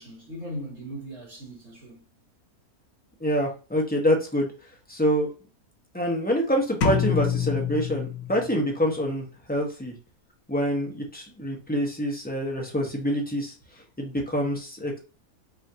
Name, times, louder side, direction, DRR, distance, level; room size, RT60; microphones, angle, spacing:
voice 1, 0.0-2.0, equal, 50° right, 2.2 m, -38 dB
voice 2, 3.2-4.5 4.9-5.3 5.9-9.9 10.5-13.5 14.0-15.0, equal, 10° left, 0.7 m, -26 dB
sound 1, 6.8-8.7, left 7 dB, 90° left, 1.3 m, -26 dB
4.9 x 2.6 x 2.8 m
omnidirectional pair, 1.6 m